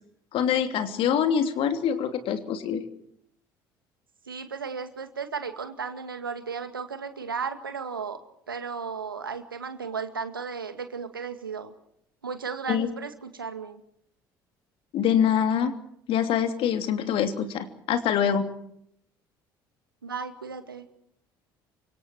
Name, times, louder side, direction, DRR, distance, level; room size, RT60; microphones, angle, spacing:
voice 1, 0.3-2.8 12.7-12.9 14.9-15.7 16.1-18.5, left 8 dB, 55° left, 7 dB, 3.0 m, -25 dB
voice 2, 4.3-8.2 8.5-11.7 12.2-13.8 20.0-20.9, right 5 dB, 85° right, 8 dB, 2.0 m, -35 dB
29.0 x 25.5 x 4.7 m, 0.71 s
figure-of-eight pair, 55°, 11 cm